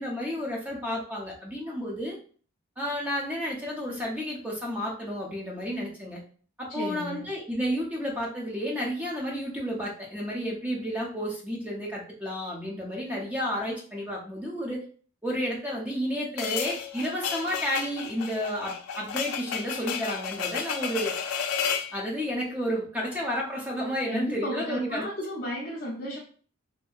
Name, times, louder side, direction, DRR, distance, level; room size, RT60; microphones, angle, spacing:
voice 1, 0.0-2.2 2.8-6.2 6.6-14.8 15.2-21.2 21.9-25.0, equal, 5° right, -2 dB, 0.6 m, -31 dB
voice 2, 6.7-7.2 24.1-26.2, equal, 40° left, -5 dB, 0.5 m, -34 dB
sound 1, 16.4-21.9, left 7 dB, 85° left, 0.4 m, -32 dB
2.7 x 2.6 x 2.3 m, 0.44 s
head